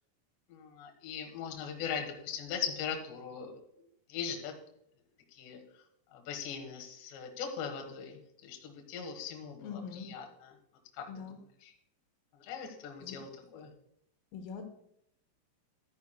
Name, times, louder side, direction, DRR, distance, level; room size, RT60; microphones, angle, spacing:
voice 1, 0.5-3.6 4.1-4.5 5.3-5.6 6.1-10.5 10.9-11.7 12.3-13.7, left 7 dB, 70° left, 3 dB, 3.2 m, -40 dB
voice 2, 9.6-10.1 11.1-11.4 13.0-13.2 14.3-14.7, left 6 dB, 90° left, 5 dB, 3.7 m, -42 dB
13.0 x 9.4 x 2.2 m, 0.75 s
omnidirectional pair, 5.8 m